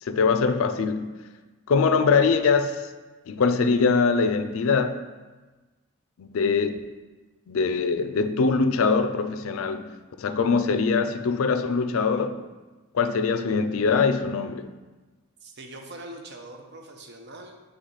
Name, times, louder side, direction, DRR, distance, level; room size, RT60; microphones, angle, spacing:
voice 1, 0.0-1.2 1.7-2.8 3.3-5.0 6.2-6.9 7.5-12.4 12.9-14.7, left 4 dB, 75° left, 10 dB, 0.4 m, -23 dB
voice 2, 15.4-17.6, right 1 dB, 50° right, 3 dB, 0.7 m, -42 dB
8.0 x 3.4 x 3.9 m, 1.2 s
head